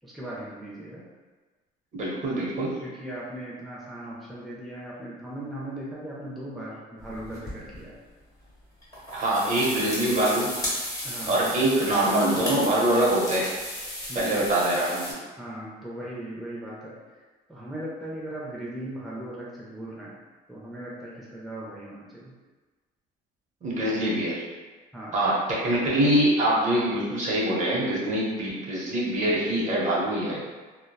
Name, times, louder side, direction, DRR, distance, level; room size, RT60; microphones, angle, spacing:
voice 1, 0.0-1.0 2.8-8.0 11.0-12.0 14.1-14.5 15.4-17.2 17.5-20.2 20.5-22.3 24.9-25.1, right 1 dB, ahead, -7 dB, 0.5 m, -38 dB
voice 2, 1.9-2.8 9.1-10.5 11.3-13.6 14.1-15.1 23.6-24.4 25.1-30.4, right 1 dB, 45° right, -5 dB, 0.8 m, -24 dB
sound 1, 7.0-7.8 8.8-15.1, left 1 dB, 20° left, 1.3 m, -34 dB
2.7 x 2.1 x 2.2 m, 1.3 s
cardioid pair, 110°, 17 cm